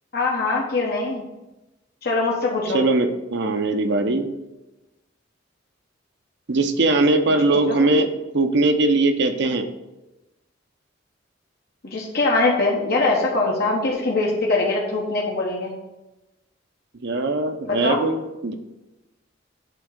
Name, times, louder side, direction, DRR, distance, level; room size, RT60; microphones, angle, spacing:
voice 1, 0.1-1.2 2.0-2.8 7.7-7.9 11.8-15.7 17.7-18.1, left 3 dB, 55° left, -3 dB, 1.2 m, -22 dB
voice 2, 2.7-4.3 6.5-9.7 17.0-18.5, right 2 dB, 65° right, 7 dB, 0.7 m, -20 dB
8.3 x 3.6 x 6.8 m, 0.99 s
head